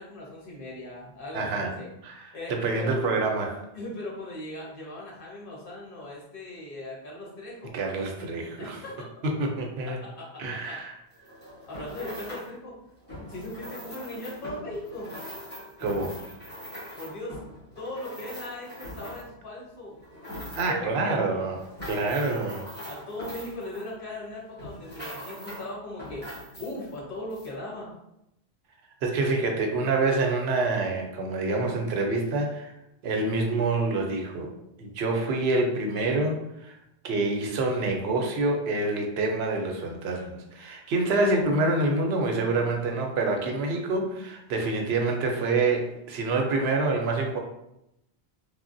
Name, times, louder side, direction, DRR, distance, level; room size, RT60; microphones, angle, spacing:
voice 1, 0.0-1.9 2.3-3.0 3.7-7.7 8.6-8.9 10.2-10.3 10.7-10.8 11.7-12.7 13.3-15.1 17.0-17.4 17.8-20.0 20.7-21.4 22.8-26.3 26.6-27.9, left 1 dB, 60° left, -5 dB, 1.1 m, -38 dB
voice 2, 1.3-1.7 2.0-3.6 7.7-8.8 9.2-10.0 10.4-10.9 15.8-16.2 20.6-21.6 21.9-22.6 29.0-32.7 33.0-34.5 34.8-36.8 37.0-47.4, right 3 dB, 85° right, 2 dB, 0.8 m, -27 dB
sound 1, 11.1-12.5 13.0-19.4 19.9-20.9 21.4-24.2 24.6-25.7 26.0-26.9 27.3-27.5, equal, 10° left, 1.1 m, -41 dB
3.1 x 2.1 x 2.5 m, 0.84 s
omnidirectional pair, 1.0 m